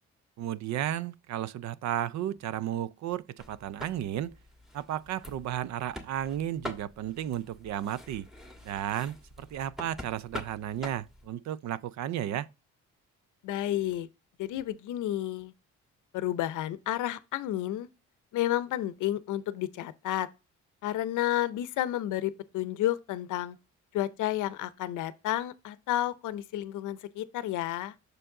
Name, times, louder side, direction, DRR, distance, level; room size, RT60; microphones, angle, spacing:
voice 1, 0.4-4.3 4.7-8.3 8.6-12.5, right 11 dB, 65° right, 0.5 m, -33 dB
sound 1, 3.4-11.3, left 1 dB, ahead, 1.4 m, -45 dB
voice 2, 13.4-14.1 14.4-15.5 16.1-17.9 18.3-20.3 20.8-23.6 23.9-27.9, left 13 dB, 80° left, 0.6 m, -31 dB
6.5 x 4.5 x 3.7 m
cardioid pair, 90°, 30 cm